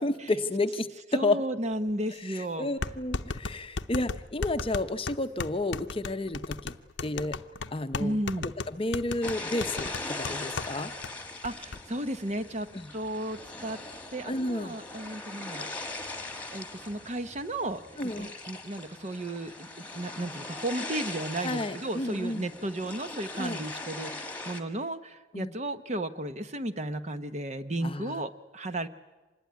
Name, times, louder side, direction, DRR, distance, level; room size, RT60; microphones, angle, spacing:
voice 1, 0.0-1.4 2.2-6.8 7.0-7.4 7.7-8.2 8.4-10.9 12.7-12.9 14.2-14.8 18.0-18.3 21.4-22.5 23.4-23.6 25.3-25.5 27.8-28.2, left 2 dB, 30° left, 9 dB, 0.8 m, -31 dB
voice 2, 1.1-2.7 8.0-8.5 11.4-13.8 14.1-15.7 16.5-28.9, right 1 dB, 35° right, 11 dB, 1.0 m, -34 dB
sound 1, 1.9-2.0 2.8-10.7 11.0-11.1 11.4-11.8, left 4 dB, 75° left, 0.8 m, -35 dB
sound 2, 9.2-24.6, left 2 dB, 10° left, 1.7 m, -40 dB
25.5 x 20.5 x 9.4 m, 1.2 s
head